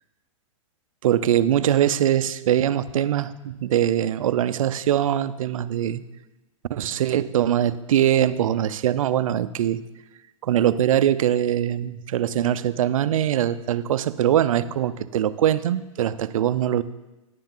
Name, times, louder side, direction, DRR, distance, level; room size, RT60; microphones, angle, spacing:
voice 1, 1.0-6.0 6.7-9.8 10.4-16.8, right 11 dB, 75° right, 15 dB, 0.5 m, -22 dB
10.5 x 9.2 x 3.8 m, 1.0 s
hypercardioid pair, 130°, 17 cm